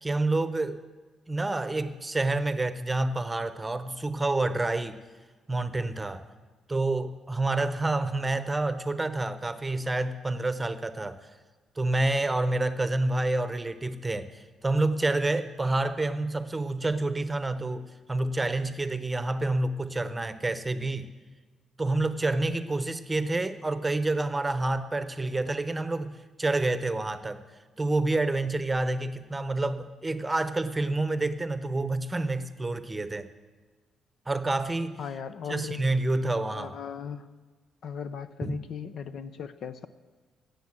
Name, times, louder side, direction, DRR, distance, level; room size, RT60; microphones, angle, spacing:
voice 1, 0.0-0.8 1.3-5.0 5.5-6.2 6.7-11.3 11.8-21.1 21.8-27.4 27.8-33.3 34.3-35.0 35.5-36.8 38.4-38.6, right 2 dB, 15° right, 11 dB, 0.9 m, -28 dB
voice 2, 35.0-35.8 36.5-37.3 37.8-39.9, left 7 dB, 65° left, 12 dB, 0.8 m, -37 dB
17.0 x 7.0 x 7.6 m, 1.4 s
cardioid pair, 90°, 0 cm